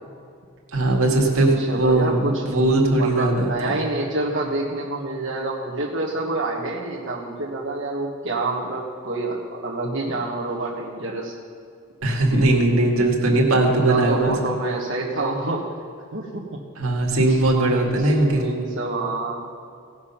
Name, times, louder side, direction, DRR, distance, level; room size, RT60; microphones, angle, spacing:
voice 1, 0.7-2.2 2.5-3.8 12.0-14.3 16.8-18.4, right 2 dB, 90° right, 0 dB, 2.0 m, -19 dB
voice 2, 1.6-11.4 13.9-15.7 16.1-16.6 17.3-17.4 18.0-19.4, right 2 dB, 60° right, -5 dB, 1.4 m, -27 dB
17.5 x 6.1 x 5.8 m, 2.4 s
head